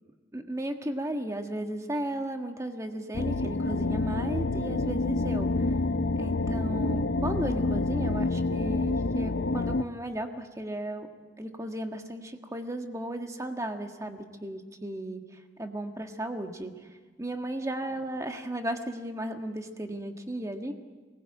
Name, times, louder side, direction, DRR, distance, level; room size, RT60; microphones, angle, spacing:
voice 1, 0.3-5.8 6.2-11.1 11.4-16.9 17.2-20.7, right 1 dB, 15° right, 5 dB, 1.5 m, -35 dB
sound 1, 3.1-9.8, left 2 dB, 70° left, 0.6 m, -28 dB
23.0 x 20.0 x 8.8 m, 1.4 s
head